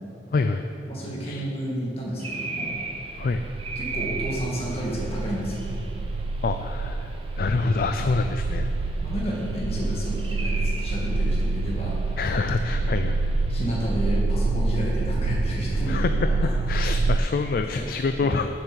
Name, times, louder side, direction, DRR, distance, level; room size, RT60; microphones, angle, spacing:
voice 1, 0.3-0.7 1.2-1.5 3.1-3.4 6.4-8.7 12.2-13.2 15.9-18.5, left 4 dB, 55° left, 8 dB, 0.3 m, -26 dB
voice 2, 0.9-2.7 3.8-5.6 9.0-12.2 12.7-13.1 13.5-17.1 17.8-17.9 18.2-18.3, equal, 35° left, -4 dB, 2.0 m, -31 dB
sound 1, 2.2-14.2, right 3 dB, 30° right, 0.8 m, -39 dB
sound 2, 2.8-17.2, right 3 dB, 65° right, 0.3 m, -27 dB
7.3 x 7.1 x 6.8 m, 2.8 s
head